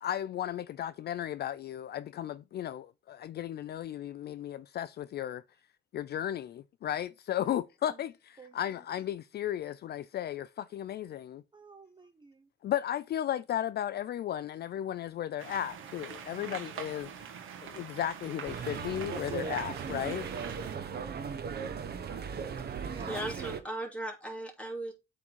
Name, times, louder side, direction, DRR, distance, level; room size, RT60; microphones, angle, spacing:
voice 1, 0.0-5.4 5.9-11.4 12.6-17.3 17.6-20.3, left 11 dB, 55° left, 0.4 m, -35 dB
voice 2, 11.5-12.5 16.4-16.6 20.6-20.9 22.7-23.2, right 4 dB, 25° right, 0.9 m, -51 dB
sound 1, 15.4-20.8, right 7 dB, 85° right, 1.4 m, -44 dB
sound 2, 18.5-23.6, right 6 dB, 55° right, 1.0 m, -37 dB
voice 3, 22.6-24.9, right 1 dB, 5° left, 2.9 m, -38 dB
8.0 x 3.7 x 4.5 m
cardioid pair, 90°, 20 cm